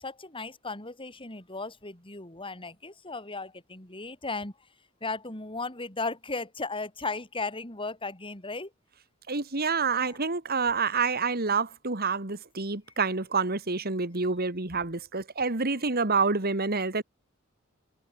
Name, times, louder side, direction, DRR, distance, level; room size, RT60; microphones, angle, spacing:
voice 1, 0.0-4.5 5.0-8.7 10.0-10.2, left 3 dB, 25° left, 4.8 m, -36 dB
voice 2, 9.3-17.0, right 4 dB, 45° right, 2.3 m, -28 dB
head